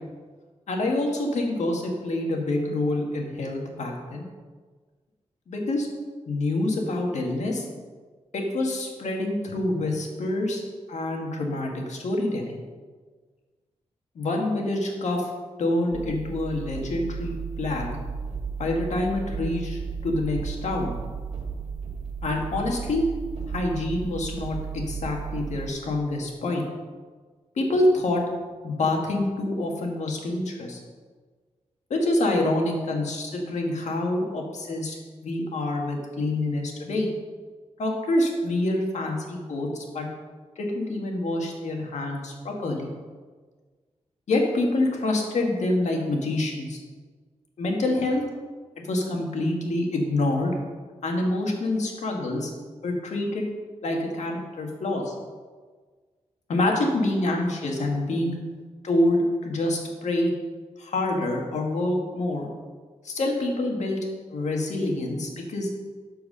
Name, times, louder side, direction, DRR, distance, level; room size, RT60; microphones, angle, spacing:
voice 1, 0.7-4.2 5.5-5.9 6.3-7.6 8.3-10.6 10.9-12.5 14.1-15.3 15.6-17.9 18.6-20.9 22.2-23.0 23.5-26.7 27.6-28.2 28.6-30.8 31.9-35.0 35.2-37.1 37.8-40.1 40.5-42.9 44.3-46.8 47.6-48.2 48.9-50.5 51.0-52.5 52.8-53.5 53.8-55.1 56.5-58.4 58.8-60.3 60.8-62.5 63.0-64.0 64.3-65.7, left 2 dB, 90° left, 1 dB, 1.7 m, -26 dB
sound 1, 15.9-25.7, right 5 dB, 75° right, 2.0 m, -34 dB
13.0 x 4.7 x 5.5 m, 1.5 s
wide cardioid pair, 165°, 12 cm